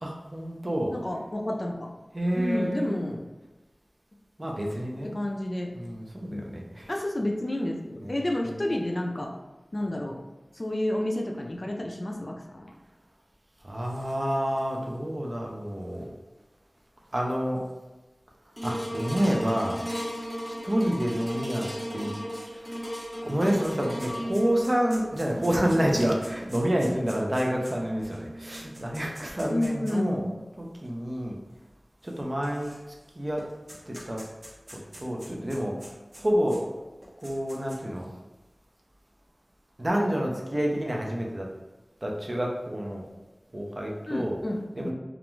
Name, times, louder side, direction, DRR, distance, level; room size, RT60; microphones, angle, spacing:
voice 1, 0.0-0.9 2.1-3.0 4.4-5.1 5.7-6.9 8.0-8.2 8.4-8.6 13.6-16.1 17.1-17.6 18.6-19.8 20.4-22.1 22.5-22.7 23.2-30.2 30.6-31.4 32.0-32.7 33.2-33.5 33.9-34.2 34.7-35.8 36.2-36.7 37.2-38.1 39.8-41.5 42.0-43.1 43.5-44.4 44.7-44.9, equal, 40° right, -1 dB, 0.5 m, -28 dB
voice 2, 0.9-1.9 2.4-3.3 4.6-4.7 5.1-5.7 6.3-6.4 6.9-9.3 9.7-10.2 10.5-12.7 20.8-21.0 29.5-30.3 44.1-44.9, left 1 dB, 45° left, 2 dB, 0.3 m, -30 dB
sound 1, 18.6-29.0 29.5-29.6, equal, 5° left, 0.8 m, -36 dB
sound 2, 22.8-22.9 23.1-30.1 30.8-30.9 32.0-33.0 33.4-36.6 37.0-38.0, equal, 65° right, 0.8 m, -47 dB
2.4 x 2.2 x 3.0 m, 1.1 s
wide cardioid pair, 60°, 0 cm